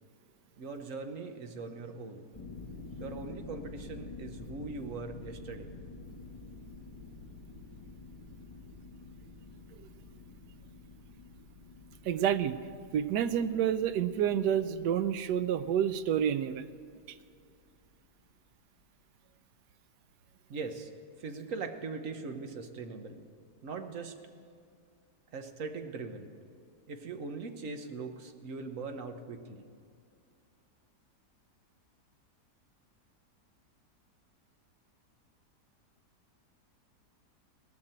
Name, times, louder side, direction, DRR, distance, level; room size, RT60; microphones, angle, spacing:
voice 1, 0.6-2.2 3.0-5.7 20.5-20.9 21.2-23.2 23.6-24.1 25.3-26.3 26.9-29.7, right 4 dB, 55° right, 6 dB, 1.3 m, -40 dB
sound 1, 2.3-18.1, left 3 dB, 15° left, 1.5 m, -49 dB
voice 2, 12.0-12.6 12.9-16.7, right 9 dB, 90° right, 12 dB, 1.2 m, -29 dB
18.0 x 6.3 x 8.8 m, 2.3 s
omnidirectional pair, 1.8 m